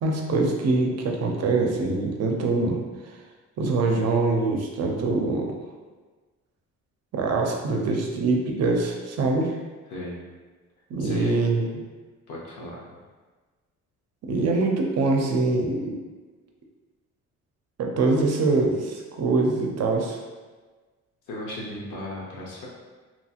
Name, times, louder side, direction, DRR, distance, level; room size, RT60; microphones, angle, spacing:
voice 1, 0.0-2.8 3.6-5.5 7.1-9.5 10.9-11.7 14.2-16.0 17.8-20.2, right 3 dB, 55° right, 1 dB, 0.6 m, -24 dB
voice 2, 9.9-10.2 11.0-11.4 12.3-13.0 21.3-22.7, left 1 dB, 90° left, -4 dB, 0.8 m, -36 dB
2.9 x 2.7 x 2.4 m, 1.3 s
cardioid pair, 90°, 30 cm